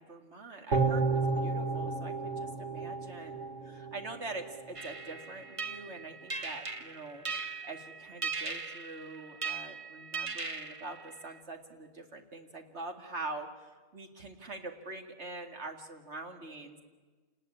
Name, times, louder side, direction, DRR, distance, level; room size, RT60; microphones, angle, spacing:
voice 1, 0.0-3.4 3.6-7.3 7.6-13.5 13.9-16.8, right 2 dB, 65° right, 4 dB, 2.5 m, -44 dB
sound 1, 0.7-4.0 4.4-4.5, right 4 dB, 80° right, 2.4 m, -31 dB
sound 2, 4.7-11.4, right 4 dB, 30° right, 1.0 m, -39 dB
27.5 x 19.0 x 9.8 m, 1.4 s
omnidirectional pair, 1.3 m